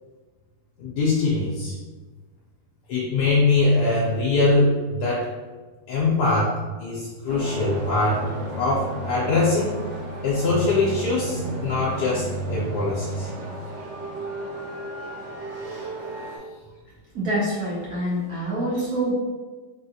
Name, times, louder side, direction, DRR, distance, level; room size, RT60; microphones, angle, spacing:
voice 1, 0.8-1.8 2.9-5.3 5.9-8.2 8.6-9.8 10.2-13.3 15.6-15.9, left 3 dB, 75° left, -5 dB, 1.2 m, -22 dB
sound 1, 7.3-16.4, right 2 dB, 85° right, 0.5 m, -32 dB
voice 2, 17.1-19.1, right 1 dB, 65° right, -7 dB, 1.2 m, -26 dB
3.7 x 2.5 x 2.7 m, 1.3 s
omnidirectional pair, 1.8 m